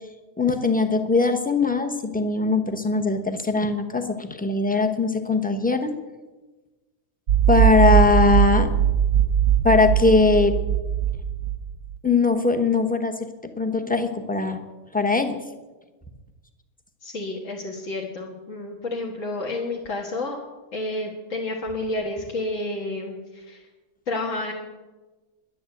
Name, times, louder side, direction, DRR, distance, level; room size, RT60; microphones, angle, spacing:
voice 1, 0.4-5.9 7.5-8.7 9.6-10.6 12.0-13.3 13.6-14.6 14.9-15.4, left 3 dB, 5° left, 5 dB, 0.7 m, -21 dB
sound 1, 7.3-12.0, right 10 dB, 90° right, 1.5 m, -20 dB
voice 2, 17.0-20.4 20.7-23.6 24.1-24.5, left 2 dB, 50° left, -3 dB, 1.9 m, -30 dB
10.5 x 10.5 x 7.9 m, 1.2 s
omnidirectional pair, 1.7 m